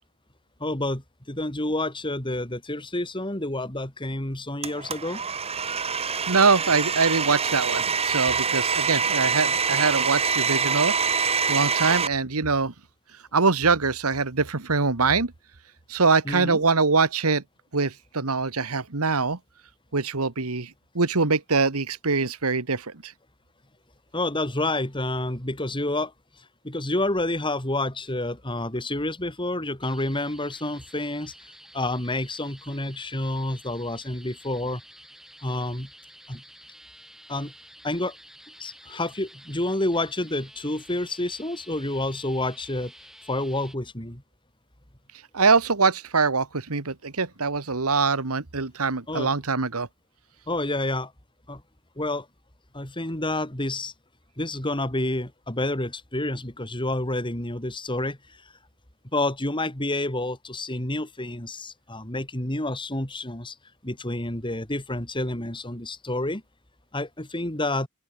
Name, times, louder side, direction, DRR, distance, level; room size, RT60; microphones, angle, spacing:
voice 1, 0.6-5.2 16.3-16.6 24.1-26.1 26.6-31.3 31.7-34.8 35.4-35.9 36.3-36.4 37.3-37.5 37.8-38.2 38.6-42.9 43.3-44.2 49.1-49.3 50.5-51.1 51.5-51.6 52.0-52.3 52.7-53.9 54.4-58.2 59.1-63.6 63.8-66.4 66.9-67.9, left 1 dB, 20° left, 3.6 m, -29 dB
Domestic sounds home sounds, 4.6-12.1, right 6 dB, 30° right, 1.6 m, -25 dB
voice 2, 6.0-10.9 11.5-12.7 13.3-15.3 15.9-17.4 17.7-19.4 19.9-23.1 45.3-49.9, right 4 dB, 85° right, 1.7 m, -23 dB
sound 1, 29.8-43.8, right 1 dB, ahead, 5.8 m, -50 dB
open air
head